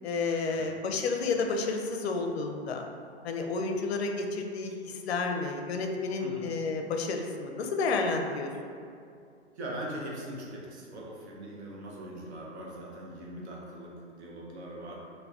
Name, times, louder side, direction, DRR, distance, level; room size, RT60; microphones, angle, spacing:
voice 1, 0.0-2.8 3.2-8.5, left 4 dB, 65° left, 3 dB, 0.5 m, -31 dB
voice 2, 9.6-15.0, right 1 dB, 65° right, -3 dB, 0.8 m, -41 dB
2.2 x 2.2 x 3.4 m, 2.4 s
figure-of-eight pair, 115°, 35 cm